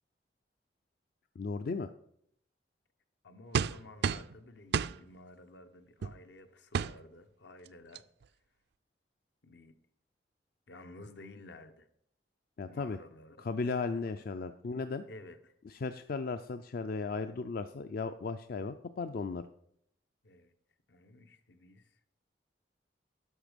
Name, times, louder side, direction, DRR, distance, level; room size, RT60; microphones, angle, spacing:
voice 1, 1.4-1.9 12.6-13.0 13.4-15.0 15.7-19.4, left 4 dB, 55° left, 0.4 m, -36 dB
voice 2, 3.2-8.0 9.4-9.8 10.7-11.9 12.7-13.4 14.2-14.3 14.7-15.5 20.2-20.5 20.9-22.0, left 2 dB, 75° left, 1.0 m, -53 dB
sound 1, 3.5-4.3 4.7-5.0 6.0-6.2 6.7-6.9 7.7-7.8 7.9-8.2, right 6 dB, 65° right, 0.3 m, -30 dB
11.0 x 6.4 x 5.2 m
head